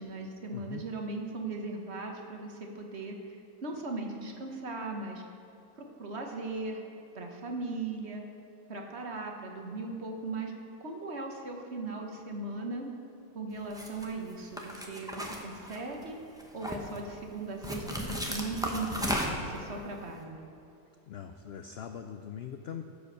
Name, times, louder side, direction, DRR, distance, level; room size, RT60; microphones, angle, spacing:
voice 1, 0.0-3.4 3.6-5.2 5.8-6.8 7.1-8.2 8.7-10.5 10.8-12.9 13.3-16.2 16.5-20.4, right 3 dB, 50° right, 2 dB, 1.3 m, -38 dB
voice 2, 0.5-0.8 21.1-22.8, left 8 dB, 80° left, 7 dB, 0.5 m, -41 dB
sound 1, 13.7-14.0 14.6-16.0 16.4-17.0 17.6-19.6, equal, 5° right, 0.8 m, -35 dB
15.0 x 5.1 x 6.7 m, 2.8 s
omnidirectional pair, 1.6 m